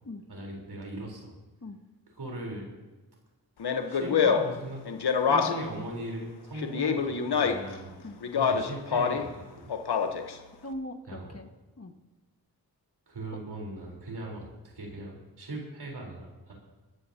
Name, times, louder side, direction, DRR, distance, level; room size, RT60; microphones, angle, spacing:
voice 1, 0.3-1.3 2.2-2.7 3.9-4.8 5.2-7.9 8.3-9.7 11.1-11.4 13.1-16.5, right 1 dB, 85° right, -1 dB, 3.9 m, -39 dB
Speech, 3.6-5.8 6.6-7.8 8.2-9.3 9.7-10.4, left 6 dB, 80° left, 1.0 m, -26 dB
voice 2, 10.6-11.9, left 1 dB, 40° left, 5 dB, 1.6 m, -41 dB
22.0 x 12.0 x 2.8 m, 1.2 s
cardioid pair, 45°, 38 cm